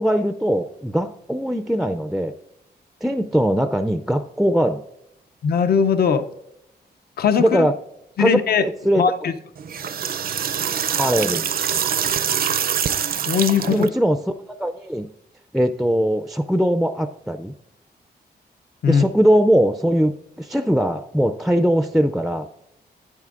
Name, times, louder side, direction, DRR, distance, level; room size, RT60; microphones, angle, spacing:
voice 1, 0.0-2.4 3.0-4.8 7.4-7.7 8.2-8.4 8.8-9.0 11.0-11.5 13.7-15.1 15.5-17.5 18.9-22.5, equal, ahead, 9 dB, 0.4 m, -20 dB
voice 2, 5.4-6.3 7.2-7.7 8.2-8.6 9.0-9.3 13.1-13.9 18.8-19.1, left 7 dB, 65° left, 11 dB, 0.5 m, -19 dB
sound 1, 9.6-13.9, right 8 dB, 60° right, 0.5 m, -24 dB
10.5 x 9.2 x 2.4 m, 0.84 s
cardioid pair, 100°, 17 cm